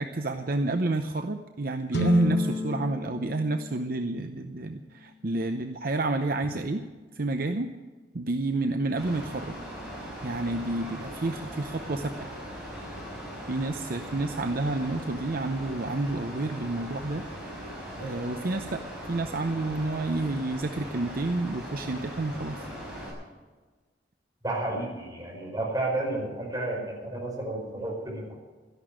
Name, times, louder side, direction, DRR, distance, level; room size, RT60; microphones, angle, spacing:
voice 1, 0.0-6.8 7.1-7.7 8.1-9.6 10.2-12.3 13.5-17.2 18.0-18.8 19.1-22.6, right 2 dB, 50° right, 7 dB, 0.7 m, -30 dB
sound 1, 1.9-6.0, equal, 70° left, 2.2 m, -30 dB
Mechanical fan, 9.0-23.1, equal, ahead, 6.4 m, -40 dB
voice 2, 24.4-28.3, right 2 dB, 20° right, -3 dB, 5.3 m, -31 dB
13.5 x 11.0 x 8.8 m, 1.3 s
head